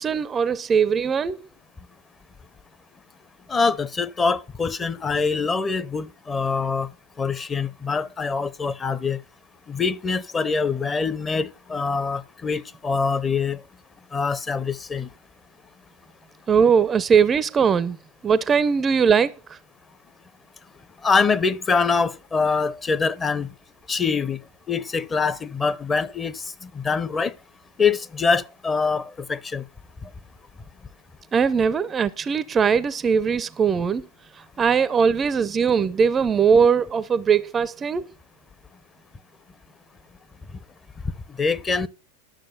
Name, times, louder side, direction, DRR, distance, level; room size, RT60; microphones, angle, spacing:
voice 1, 0.0-1.4 16.5-18.0 18.2-19.3 31.3-34.1 34.6-38.1, right 6 dB, 20° right, 0.5 m, -20 dB
voice 2, 3.5-6.9 7.2-9.2 9.7-13.6 14.1-15.1 21.0-23.5 23.9-24.4 24.7-27.3 27.8-29.6 41.4-41.9, left 4 dB, 15° left, 0.7 m, -24 dB
11.5 x 6.7 x 5.6 m
figure-of-eight pair, 90°, 0 cm